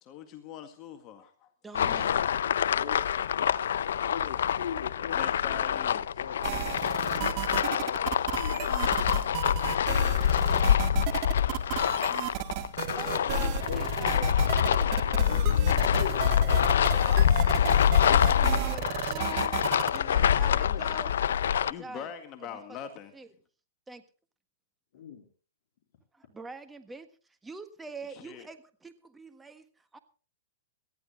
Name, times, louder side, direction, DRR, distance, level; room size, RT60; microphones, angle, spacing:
voice 1, 0.0-1.5 5.1-6.1 21.6-23.1 28.1-28.5, left 8 dB, 35° left, 6 dB, 1.8 m, -42 dB
voice 2, 1.6-2.2 12.9-14.9 15.3-17.6 18.1-19.5 19.9-21.1 21.5-22.1 23.1-23.3 23.9-24.0 26.1-27.1 27.4-29.7 29.9-30.0, right 3 dB, 10° right, 9 dB, 1.5 m, -45 dB
sound 1, 1.7-21.7, left 9 dB, 75° left, 0.6 m, -26 dB
voice 3, 4.1-7.3 7.6-9.7 12.9-16.8 17.9-18.2 20.6-20.8 24.9-25.3, left 7 dB, 55° left, 2 dB, 3.5 m, -42 dB
sound 2, 6.4-20.0, right 13 dB, 40° right, 1.7 m, -34 dB
18.5 x 13.5 x 4.0 m, 0.38 s
hypercardioid pair, 135°, 0 cm